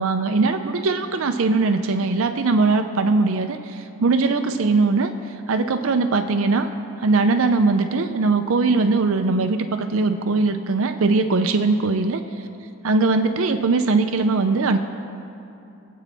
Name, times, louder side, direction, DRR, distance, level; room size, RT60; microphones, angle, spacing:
voice 1, 0.0-6.7 7.0-12.2 12.8-14.8, right 3 dB, 65° right, 8 dB, 0.5 m, -20 dB
25.0 x 8.4 x 3.5 m, 2.7 s
head